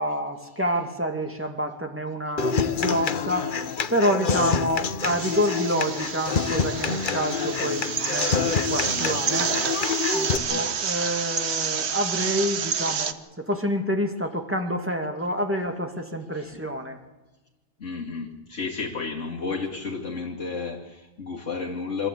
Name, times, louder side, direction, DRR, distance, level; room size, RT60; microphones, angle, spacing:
voice 1, 0.0-3.5 3.9-9.6 10.1-17.0, equal, 10° right, 4 dB, 2.2 m, -28 dB
Human voice / Acoustic guitar, 2.4-10.4, left 6 dB, 45° left, 1.0 m, -27 dB
sound 1, 5.0-13.1, right 6 dB, 60° right, 1.2 m, -29 dB
voice 2, 8.9-10.7 16.3-16.5 17.8-22.1, left 4 dB, 65° left, -4 dB, 2.9 m, -33 dB
26.0 x 13.5 x 8.6 m, 1.1 s
omnidirectional pair, 1.3 m